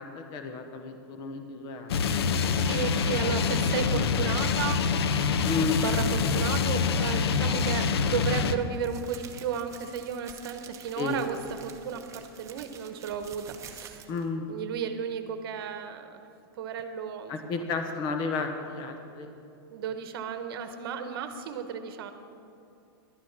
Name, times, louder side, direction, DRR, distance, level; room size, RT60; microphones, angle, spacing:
voice 1, 0.0-2.2 3.3-4.0 5.4-5.8 10.9-11.3 14.1-14.5 17.3-19.3, left 4 dB, 35° left, 6 dB, 0.9 m, -33 dB
death grind, 1.9-8.6, left 5 dB, 80° left, 0.7 m, -26 dB
voice 2, 2.5-5.5 5.8-11.4 11.6-14.1 14.5-16.2 16.6-17.6 19.7-22.1, right 7 dB, 65° right, 8 dB, 1.0 m, -34 dB
sound 1, 4.3-4.6 7.7-14.3, right 7 dB, 25° right, 1.0 m, -49 dB
11.5 x 9.6 x 5.9 m, 2.7 s
hypercardioid pair, 135°, 13 cm